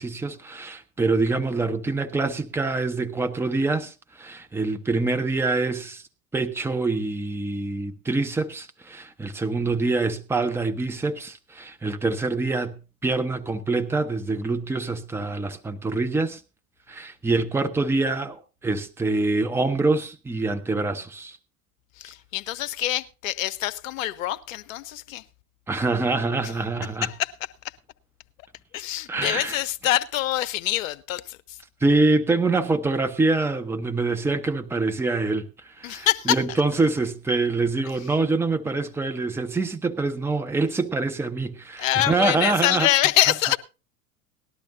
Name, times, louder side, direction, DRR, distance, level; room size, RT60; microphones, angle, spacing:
voice 1, 0.0-6.1 6.3-16.4 16.9-21.4 25.7-27.1 29.1-29.6 31.8-42.9, right 3 dB, 5° right, 0.8 m, -25 dB
voice 2, 22.0-25.2 26.4-26.5 27.0-27.3 27.6-27.7 28.7-31.6 35.8-36.4 41.8-43.6, left 14 dB, 60° left, 0.8 m, -25 dB
18.5 x 12.0 x 2.7 m
figure-of-eight pair, 85°, 46 cm